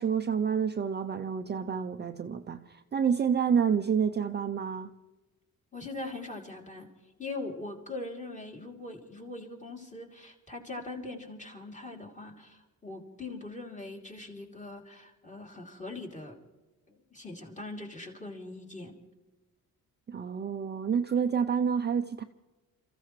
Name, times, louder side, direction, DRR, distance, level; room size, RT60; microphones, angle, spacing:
voice 1, 0.0-4.9 20.1-22.2, right 7 dB, 30° right, 0.5 m, -28 dB
voice 2, 5.7-6.9 7.2-16.4 16.9-19.0, left 2 dB, 20° left, 3.0 m, -41 dB
29.5 x 15.0 x 3.2 m
cardioid pair, 145°, 36 cm